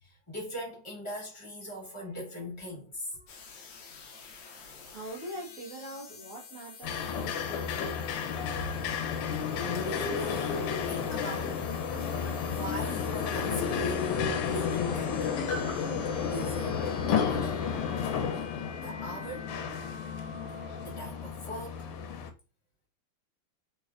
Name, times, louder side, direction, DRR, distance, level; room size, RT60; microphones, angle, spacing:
voice 1, 0.0-3.4 9.4-11.7 12.5-15.3 16.3-17.7 18.8-19.5 20.8-21.9, left 1 dB, 15° left, 1.2 m, -40 dB
sound 1, 3.3-21.1, left 4 dB, 70° left, 0.8 m, -48 dB
voice 2, 4.8-7.9, right 1 dB, 45° right, 1.3 m, -43 dB
sound 2, 6.8-22.3, left 6 dB, 85° left, 1.5 m, -32 dB
3.5 x 3.1 x 2.4 m
omnidirectional pair, 2.4 m